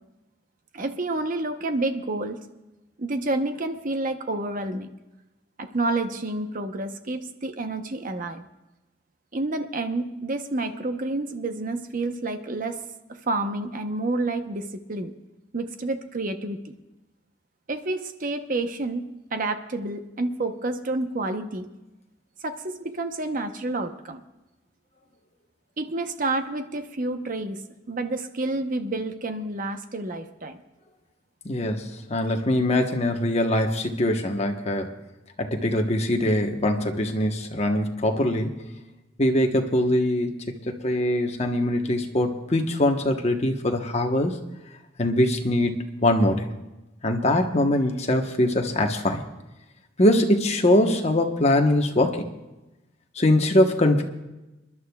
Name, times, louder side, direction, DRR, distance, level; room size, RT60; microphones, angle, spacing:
voice 1, 0.7-2.4 3.0-4.9 5.6-8.4 9.3-12.8 13.1-15.1 15.5-16.6 17.7-21.7 22.4-24.2 25.8-27.6 27.9-30.6, right 2 dB, 45° right, 8 dB, 0.9 m, -29 dB
voice 2, 31.4-34.9 35.4-38.5 39.2-44.4 45.0-46.4 47.0-49.2 50.0-52.3 53.2-54.0, left 1 dB, 35° left, 3 dB, 1.1 m, -22 dB
27.5 x 11.5 x 2.3 m, 1.0 s
head